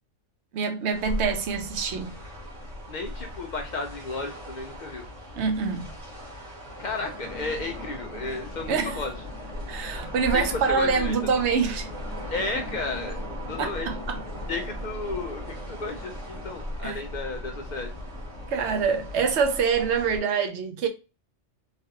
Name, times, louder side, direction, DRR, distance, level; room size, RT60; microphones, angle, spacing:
voice 1, 0.5-2.1 5.4-5.9 8.7-9.0 9.7-11.9 13.6-14.2 16.8-17.0 18.5-20.9, right 5 dB, 70° right, 0.9 m, -25 dB
sound 1, 0.9-20.2, left 1 dB, 85° right, 1.5 m, -37 dB
voice 2, 2.9-5.1 6.8-9.1 10.3-11.2 12.3-13.2 13.5-13.9 14.5-17.9, left 3 dB, 65° left, 0.4 m, -33 dB
3.1 x 2.4 x 2.7 m
omnidirectional pair, 1.3 m